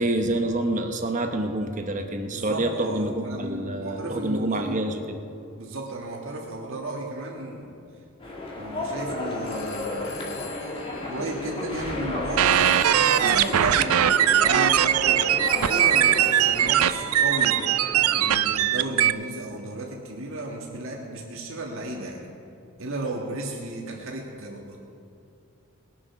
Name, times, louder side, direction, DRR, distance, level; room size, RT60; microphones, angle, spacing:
voice 1, 0.0-5.2, right 1 dB, 35° right, 5 dB, 0.9 m, -27 dB
voice 2, 2.3-4.8 5.5-7.8 8.6-10.7 11.0-14.0 14.4-15.3 15.6-17.6 18.1-22.3 22.8-24.8, right 2 dB, 65° right, -1 dB, 1.6 m, -34 dB
sound 1, 8.2-18.3, left 2 dB, 25° left, 1.8 m, -33 dB
Telephone, 9.3-17.1, left 7 dB, 80° left, 1.5 m, -45 dB
sound 2, 12.4-19.1, right 10 dB, 85° right, 0.4 m, -20 dB
20.0 x 7.5 x 5.8 m, 2.5 s
head